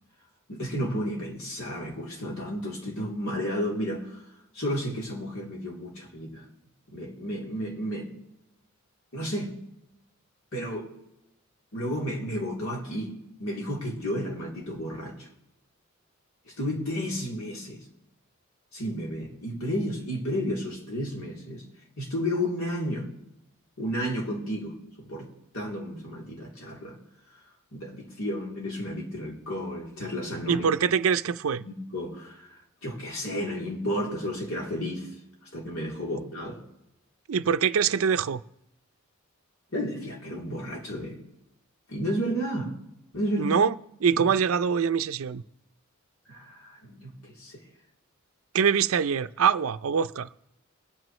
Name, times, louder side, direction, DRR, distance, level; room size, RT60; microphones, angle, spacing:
voice 1, 0.5-4.2 4.5-6.4 6.9-8.1 9.1-9.5 10.5-10.9 11.7-13.1 13.4-15.3 16.6-17.8 18.7-21.6 22.0-23.1 23.8-25.3 25.5-26.9 27.7-30.7 31.6-35.1 35.5-36.6 39.7-41.2 41.9-42.7 43.1-43.6 44.1-44.2 46.3-47.5, equal, 80° left, 3.3 m, -32 dB
voice 2, 30.5-31.6 37.3-38.4 43.4-43.7 44.0-45.4 48.5-50.3, right 7 dB, 75° right, 0.5 m, -24 dB
21.5 x 9.1 x 3.2 m
head